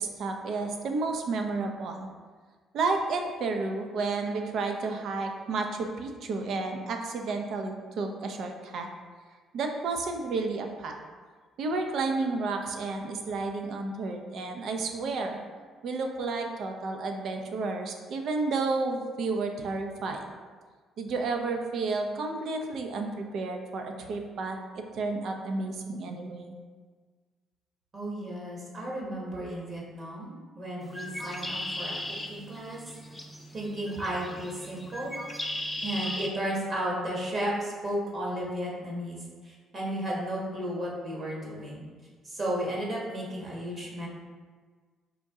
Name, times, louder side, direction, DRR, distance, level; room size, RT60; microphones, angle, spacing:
voice 1, 0.0-2.1 2.7-8.9 9.5-11.0 11.6-15.4 15.8-20.2 21.0-26.6, right 3 dB, 65° right, 4 dB, 0.5 m, -31 dB
voice 2, 27.9-32.8 33.5-35.2 35.8-41.8 42.2-44.1, right 1 dB, 40° right, -3 dB, 1.2 m, -34 dB
Bird, 30.8-36.3, left 1 dB, 5° left, 0.5 m, -37 dB
4.3 x 2.7 x 3.5 m, 1.5 s
cardioid pair, 90°, 0 cm